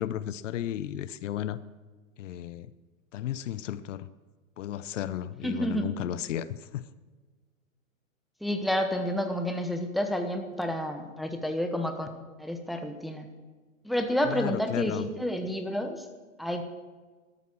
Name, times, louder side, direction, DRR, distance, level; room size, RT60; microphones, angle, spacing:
voice 1, 0.0-1.6 2.2-2.7 3.1-4.1 4.6-6.9 14.2-15.1, left 11 dB, 60° left, 15 dB, 0.8 m, -34 dB
voice 2, 5.4-5.9 8.4-12.1 12.4-13.3 13.8-16.1 16.4-16.6, equal, ahead, 5 dB, 1.0 m, -30 dB
13.0 x 12.5 x 6.1 m, 1.3 s
hypercardioid pair, 125°, 42 cm